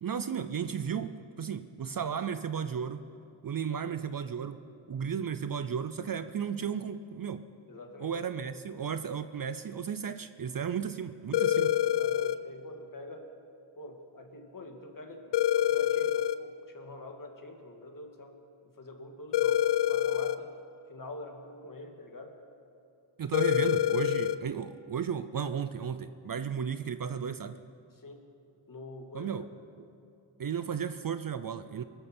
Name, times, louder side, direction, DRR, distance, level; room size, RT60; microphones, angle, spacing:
voice 1, 0.0-3.1 3.4-4.6 4.9-7.4 8.0-11.7 23.2-27.6 29.1-29.5 30.4-31.8, right 7 dB, 45° right, 11 dB, 0.5 m, -34 dB
voice 2, 7.7-8.1 8.7-8.8 11.5-13.3 13.8-18.4 18.8-20.6 20.9-22.3 28.0-28.2 28.7-29.3, left 2 dB, 40° left, 3 dB, 2.0 m, -46 dB
sound 1, 11.3-12.4 15.3-16.4 19.3-20.4 23.3-24.4, left 12 dB, 55° left, 0.6 m, -26 dB
23.5 x 13.5 x 4.4 m, 2.7 s
wide cardioid pair, 110°, 49 cm